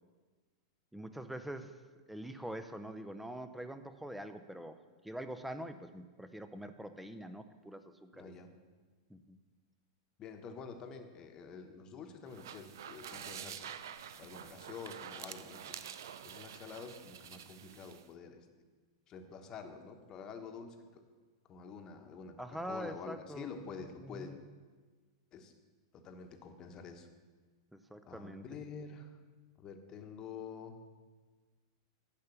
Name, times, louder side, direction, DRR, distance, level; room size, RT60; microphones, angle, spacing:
voice 1, 0.9-1.8 2.1-4.8 5.0-8.3 9.1-9.4 22.4-23.6 24.0-24.5 27.7-28.5, right 1 dB, 5° right, 9 dB, 0.7 m, -44 dB
voice 2, 8.1-8.5 10.2-13.8 14.2-15.9 16.2-18.4 19.1-21.0 21.5-24.3 25.3-25.5 25.9-27.1 28.0-29.1 29.6-30.8, left 5 dB, 35° left, 6 dB, 1.2 m, -48 dB
sound 1, 12.3-18.1, right 9 dB, 65° right, 0.5 m, -48 dB
10.5 x 5.5 x 7.0 m, 1.4 s
hypercardioid pair, 100°, 2 cm